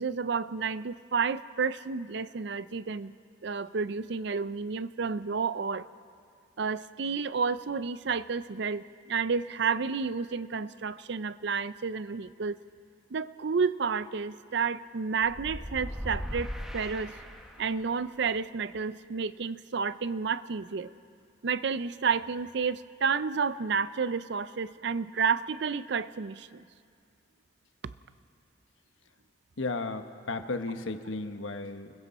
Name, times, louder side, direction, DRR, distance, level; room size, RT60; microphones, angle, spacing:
voice 1, 0.0-3.1 3.4-5.9 6.6-12.6 13.1-17.1 17.6-20.9 21.4-26.6, right 5 dB, 65° right, 15 dB, 0.5 m, -31 dB
sound 1, 15.2-17.9, equal, ahead, 1.5 m, -38 dB
voice 2, 29.6-31.9, left 3 dB, 90° left, 8 dB, 1.1 m, -34 dB
29.5 x 21.0 x 4.3 m, 2.2 s
head